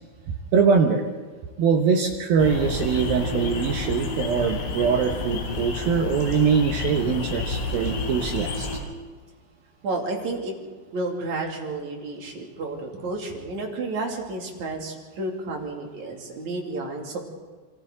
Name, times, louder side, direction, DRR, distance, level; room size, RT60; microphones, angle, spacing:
voice 1, 0.5-1.1 1.6-8.7, right 6 dB, 75° right, 4 dB, 2.2 m, -22 dB
sound 1, 2.4-8.8, left 3 dB, 80° left, 5.6 m, -30 dB
voice 2, 9.8-17.2, right 2 dB, 45° right, 1 dB, 3.3 m, -31 dB
28.5 x 23.5 x 3.9 m, 1.4 s
omnidirectional pair, 5.7 m